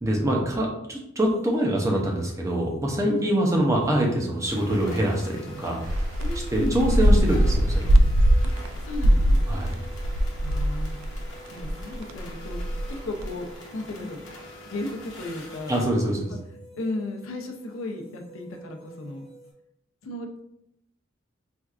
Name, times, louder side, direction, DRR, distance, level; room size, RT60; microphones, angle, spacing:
voice 1, 0.0-5.8 6.5-8.0 9.5-9.8 15.7-16.3, right 1 dB, 15° right, -1 dB, 0.5 m, -24 dB
sound 1, 1.2-19.5, right 2 dB, 30° left, 0.6 m, -49 dB
sound 2, 4.4-15.8, left 1 dB, 65° left, 1.0 m, -45 dB
sound 3, 5.8-11.3 11.6-13.3, equal, 75° right, 0.3 m, -21 dB
voice 2, 6.2-6.8 8.4-8.5 8.8-9.5 10.4-10.9 11.5-12.6 12.9-13.5 13.7-14.2 14.7-15.8 16.3-16.4 16.7-19.2 20.0-20.3, left 1 dB, 85° left, 3 dB, 0.5 m, -34 dB
4.3 x 2.3 x 2.4 m, 0.79 s
head